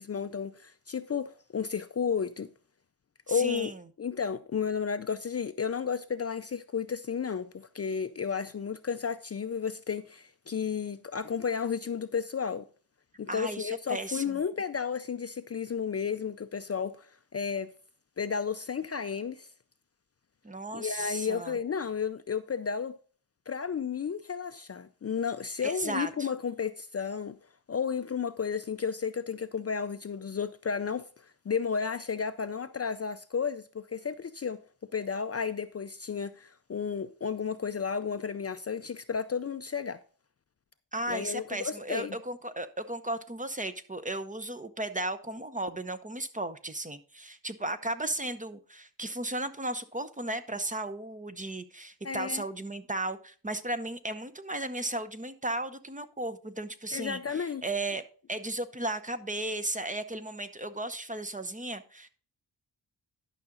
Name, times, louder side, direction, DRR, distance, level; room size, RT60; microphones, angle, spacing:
voice 1, 0.0-2.5 3.3-3.7 4.0-12.6 13.2-17.1 17.3-17.7 18.2-19.5 20.7-22.9 23.5-27.4 27.7-34.6 34.9-40.0 41.1-42.2 52.0-52.4 56.9-57.6, left 6 dB, 35° left, 0.5 m, -32 dB
voice 2, 3.3-3.8 13.3-14.4 20.4-21.6 25.6-26.3 40.9-58.0 58.3-62.1, right 1 dB, 20° right, 0.7 m, -35 dB
11.5 x 5.9 x 3.8 m
wide cardioid pair, 90°, 42 cm